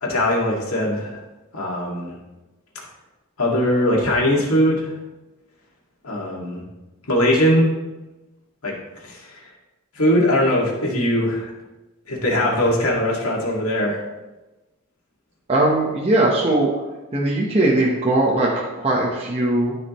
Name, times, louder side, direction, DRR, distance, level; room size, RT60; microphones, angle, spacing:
voice 1, 0.0-1.2 1.5-2.1 3.4-4.9 6.0-6.6 7.1-7.7 8.6-8.8 9.0-9.4 10.0-11.5 12.1-14.0, left 1 dB, 80° left, -2 dB, 2.1 m, -20 dB
voice 2, 15.5-16.7 17.1-19.7, right 2 dB, 30° right, -4 dB, 1.1 m, -20 dB
14.5 x 5.0 x 3.1 m, 1.1 s
head